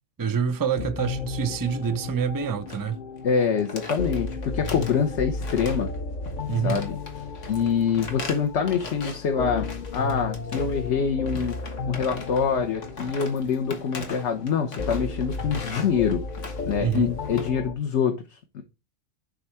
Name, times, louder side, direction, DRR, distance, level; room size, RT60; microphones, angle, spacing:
voice 1, 0.2-3.0 6.5-6.8 16.8-17.1, right 7 dB, 30° right, 0.4 m, -26 dB
sound 1, 0.8-17.7, left 4 dB, 50° left, 0.7 m, -34 dB
sound 2, 2.7-2.9 3.2-3.3 3.6-5.0 5.4-6.0 6.2-9.3 9.6-10.9 11.2-17.5, left 3 dB, 85° left, 1.8 m, -39 dB
voice 2, 3.2-5.9 6.6-6.9 7.5-11.6 11.9-16.2 16.7-18.6, left 6 dB, 70° left, 1.2 m, -25 dB
10.5 x 3.7 x 4.4 m
omnidirectional pair, 1.2 m